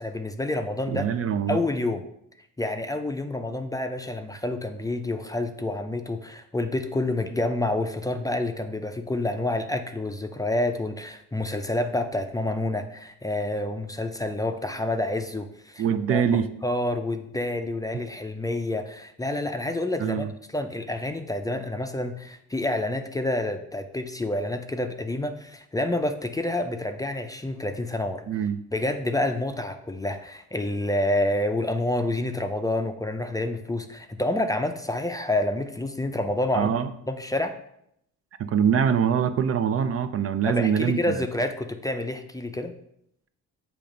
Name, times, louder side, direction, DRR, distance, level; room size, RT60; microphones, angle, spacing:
voice 1, 0.0-1.1 1.5-2.0 2.6-20.3 20.5-28.2 28.7-37.5 40.5-42.7, left 1 dB, 10° left, 6 dB, 0.5 m, -28 dB
voice 2, 0.9-1.6 15.8-16.5 20.0-20.3 28.3-28.6 36.5-36.9 38.4-41.2, right 7 dB, 50° right, 10 dB, 0.5 m, -24 dB
7.0 x 2.9 x 5.1 m, 0.75 s
cardioid pair, 90°, 30 cm